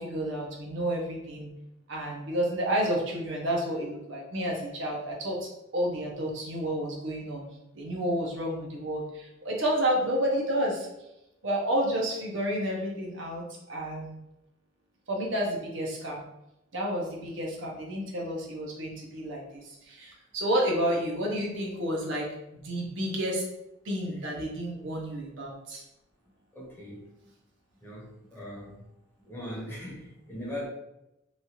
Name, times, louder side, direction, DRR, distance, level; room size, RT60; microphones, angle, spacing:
voice 1, 0.0-1.5 1.9-7.4 7.7-10.9 11.4-14.2 15.1-16.2 16.7-22.3 22.5-23.4 23.8-25.8, equal, 65° right, -2 dB, 0.7 m, -30 dB
voice 2, 26.5-27.0 27.8-28.8 29.2-30.7, equal, 10° left, -6 dB, 0.9 m, -39 dB
3.1 x 2.4 x 2.7 m, 0.88 s
head